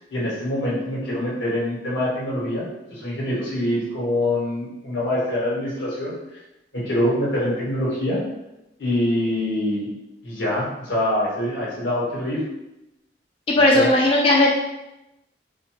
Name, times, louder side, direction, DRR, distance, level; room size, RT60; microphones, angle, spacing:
voice 1, 0.1-6.1 6.7-8.2 8.8-9.9 10.2-12.4 13.7-13.9, left 1 dB, 90° left, -7 dB, 1.4 m, -24 dB
voice 2, 13.5-14.5, left 1 dB, 30° left, -3 dB, 0.3 m, -16 dB
2.5 x 2.4 x 3.1 m, 0.93 s
head